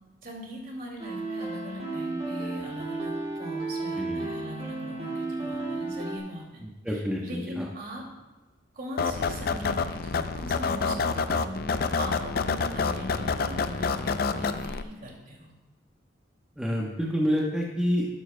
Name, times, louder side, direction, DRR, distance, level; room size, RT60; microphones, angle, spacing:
voice 1, 0.2-8.1 8.7-11.7 12.0-15.5, equal, 50° right, -1 dB, 2.4 m, -40 dB
sound 1, 1.0-6.2, right 3 dB, 30° right, 2.0 m, -33 dB
voice 2, 4.0-4.3 6.6-7.7 11.3-11.4 16.6-18.1, equal, 5° right, -3 dB, 0.9 m, -28 dB
sound 2, 9.0-14.8, left 5 dB, 50° left, 0.4 m, -28 dB
12.5 x 11.5 x 2.2 m, 1.2 s
head